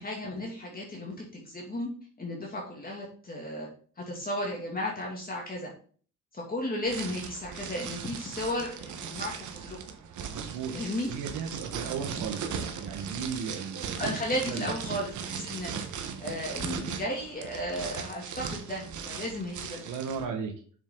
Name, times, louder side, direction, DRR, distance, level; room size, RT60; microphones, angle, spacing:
voice 1, 0.0-1.9 2.2-3.7 4.0-5.7 6.3-9.8 10.7-11.1 14.0-15.7 16.2-20.0, left 1 dB, 30° left, -2 dB, 2.6 m, -34 dB
sound 1, 6.9-20.2, right 7 dB, 70° right, 1.4 m, -38 dB
voice 2, 10.3-10.7 11.1-14.0 14.5-14.7 19.8-20.5, right 6 dB, 90° right, 3 dB, 1.5 m, -35 dB
7.1 x 7.1 x 3.9 m, 0.43 s
cardioid pair, 100°, 31 cm